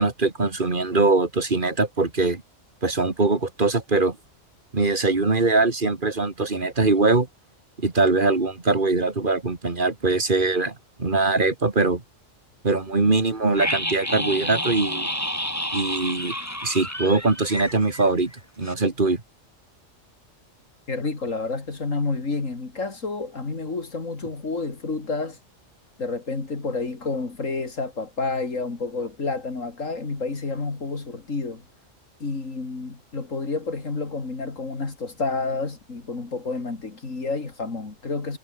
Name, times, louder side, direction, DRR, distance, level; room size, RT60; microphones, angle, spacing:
voice 1, 0.0-2.4 2.8-4.2 4.7-7.3 7.8-10.7 11.0-12.0 12.6-15.1 15.7-16.3 16.6-18.3 18.6-19.2, right 3 dB, 40° right, 2.6 m, -22 dB
sound 1, 13.6-18.4 18.6-18.7, equal, 10° left, 7.8 m, -29 dB
voice 2, 20.9-25.4 26.0-31.6 32.2-38.4, left 3 dB, 85° left, 3.5 m, -29 dB
omnidirectional pair, 1.3 m